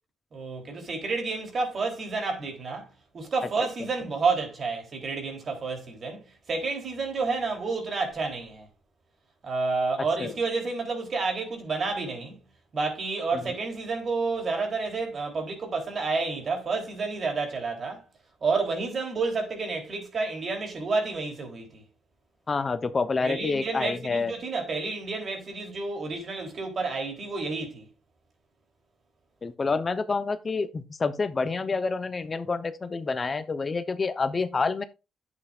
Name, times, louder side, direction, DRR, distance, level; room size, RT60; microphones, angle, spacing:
voice 1, 0.3-2.9 3.1-8.7 9.4-12.4 12.7-18.0 18.4-21.8 23.2-27.9, right 4 dB, 45° right, 3.4 m, -30 dB
voice 2, 22.5-24.3 29.4-34.8, left 4 dB, 30° left, 0.8 m, -28 dB
11.0 x 8.0 x 2.5 m
cardioid pair, 90°, 0 cm